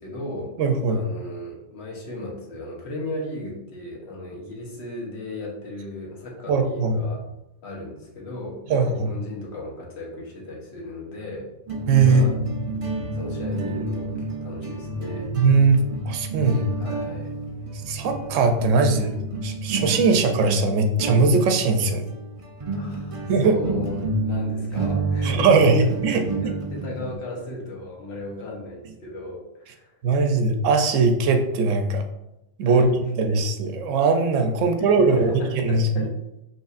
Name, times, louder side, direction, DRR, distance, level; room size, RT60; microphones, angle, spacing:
voice 1, 0.0-0.5 0.9-7.2 7.6-11.5 12.0-12.4 13.1-15.3 16.7-17.4 22.7-25.7 26.0-30.0 32.6-33.1 34.5-36.1, left 1 dB, 60° left, -2 dB, 1.3 m, -36 dB
voice 2, 0.6-1.0 6.5-7.0 8.7-9.1 11.9-12.3 15.3-16.6 17.9-19.2 19.4-22.1 23.3-23.6 25.2-26.5 30.0-32.0 32.6-32.9 33.2-36.0, right 4 dB, 85° right, 5 dB, 0.9 m, -20 dB
sound 1, 11.7-27.2, right 2 dB, 40° right, 0.5 m, -30 dB
5.4 x 3.2 x 2.4 m, 0.89 s
omnidirectional pair, 1.3 m